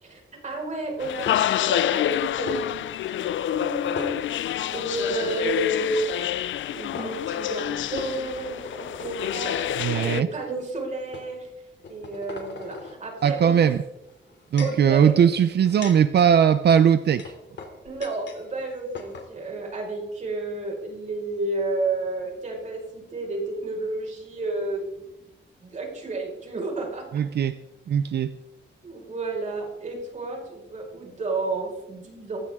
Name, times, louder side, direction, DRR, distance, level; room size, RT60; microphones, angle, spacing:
voice 1, 0.0-11.5 11.9-13.7 14.6-15.1 17.8-25.2 25.6-27.0 28.8-32.4, right 2 dB, 40° right, 0 dB, 5.2 m, -31 dB
sound 1, 1.0-10.2, left 12 dB, 80° left, 0.4 m, -28 dB
sound 2, 1.3-1.7 2.5-2.6 3.9-4.6 5.0-5.2 6.5-6.6 6.9-7.1 8.0-9.6 10.3-10.5 11.1-11.3 11.8-13.0 14.1-14.9 15.5-18.4 18.7-18.8 18.9-19.3, left 4 dB, 65° left, 2.9 m, -39 dB
voice 2, 9.8-10.3 13.2-13.8 14.5-17.3 27.1-27.6 27.9-28.3, right 8 dB, 60° right, 11 dB, 0.6 m, -19 dB
20.0 x 16.0 x 3.7 m, 0.92 s
wide cardioid pair, 175°, 19 cm